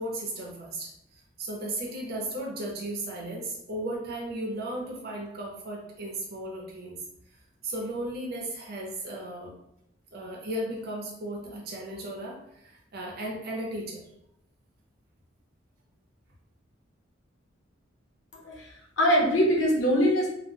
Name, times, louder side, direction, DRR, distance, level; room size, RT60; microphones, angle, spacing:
voice 1, 0.0-7.0 7.6-9.5 10.1-14.0, right 1 dB, 55° right, -1 dB, 0.7 m, -35 dB
voice 2, 18.3-20.3, equal, 80° left, -1 dB, 0.7 m, -23 dB
2.2 x 2.1 x 3.3 m, 0.79 s
head